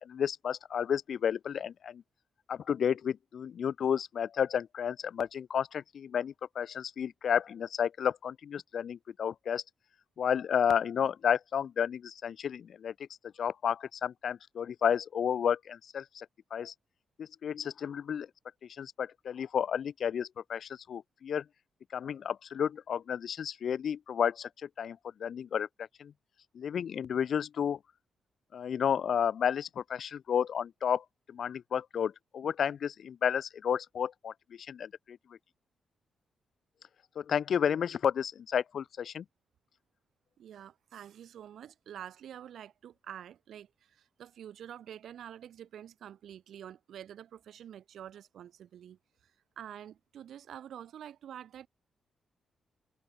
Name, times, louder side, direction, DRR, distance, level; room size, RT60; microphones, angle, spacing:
voice 1, 0.0-2.0 2.5-9.6 10.2-12.9 13.4-16.7 17.2-18.3 18.8-21.4 21.9-26.1 26.5-27.8 28.5-35.2 37.1-39.2, left 8 dB, 65° left, 3.0 m, -32 dB
voice 2, 40.4-49.3 49.6-51.7, right 10 dB, 80° right, 6.6 m, -47 dB
cardioid pair, 100°, 0 cm